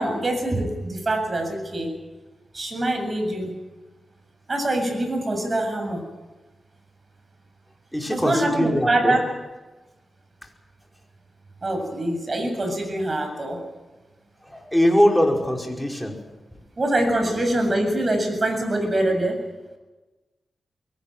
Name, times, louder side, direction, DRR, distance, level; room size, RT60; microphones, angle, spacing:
voice 1, 0.0-1.9 2.5-3.5 4.5-6.0 8.1-9.3 11.6-13.6 16.8-19.4, right 1 dB, 40° right, 5 dB, 7.6 m, -24 dB
voice 2, 7.9-9.2 14.5-16.2, equal, 5° left, 1 dB, 5.3 m, -21 dB
23.0 x 18.0 x 9.2 m, 1.2 s
cardioid pair, 65°, 0 cm